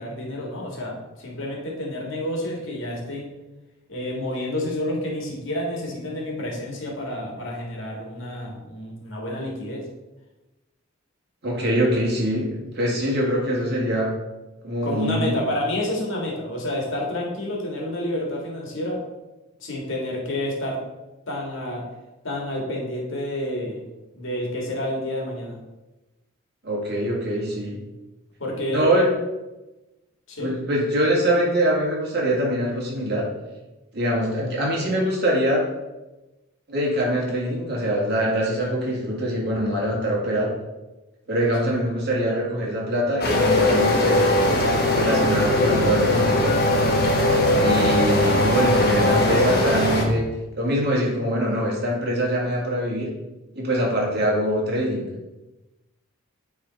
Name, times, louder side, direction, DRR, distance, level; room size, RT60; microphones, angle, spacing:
voice 1, 0.0-3.3 3.9-9.8 14.8-19.0 19.6-20.8 21.3-21.8 22.2-23.8 24.1-25.6 28.4-28.9 30.3-30.5 41.6-41.8, left 1 dB, 65° left, -2 dB, 1.8 m, -29 dB
voice 2, 11.4-12.5 12.8-14.1 14.6-15.4 26.6-27.8 28.7-29.1 30.4-33.3 33.9-35.6 36.7-40.5 41.3-44.3 44.9-46.5 47.6-50.3 50.6-53.1 53.6-55.1, right 1 dB, 50° right, -3 dB, 2.0 m, -23 dB
sound 1, 43.2-50.1, left 1 dB, 50° left, 1.2 m, -19 dB
9.2 x 3.7 x 4.0 m, 1.0 s
head